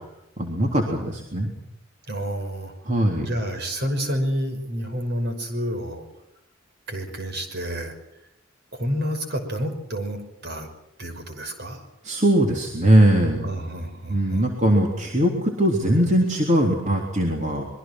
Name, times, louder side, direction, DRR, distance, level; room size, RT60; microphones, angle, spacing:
voice 1, 0.4-1.5 2.9-3.3 12.0-13.4 14.1-17.7, right 1 dB, 35° right, 0 dB, 3.7 m, -20 dB
voice 2, 2.1-2.7 3.2-6.1 6.9-7.9 8.7-10.7 11.0-11.8 13.4-14.5, equal, 55° right, 6 dB, 5.9 m, -29 dB
26.0 x 22.5 x 6.2 m, 0.86 s
head